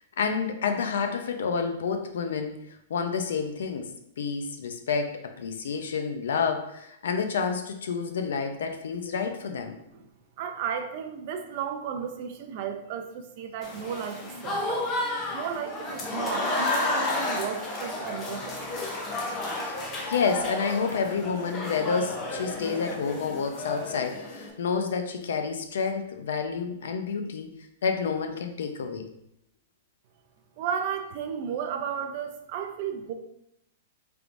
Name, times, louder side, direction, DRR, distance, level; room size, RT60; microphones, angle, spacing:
voice 1, 0.2-9.8 19.6-27.5 27.8-29.1, left 5 dB, 80° left, 6 dB, 0.6 m, -29 dB
voice 2, 10.4-14.8 15.3-18.6 30.6-33.1, right 7 dB, 35° right, 5 dB, 0.4 m, -34 dB
Applause / Crowd, 13.6-24.5, left 2 dB, 20° left, 0.6 m, -32 dB
4.6 x 3.4 x 2.6 m, 0.79 s
supercardioid pair, 170°, 0 cm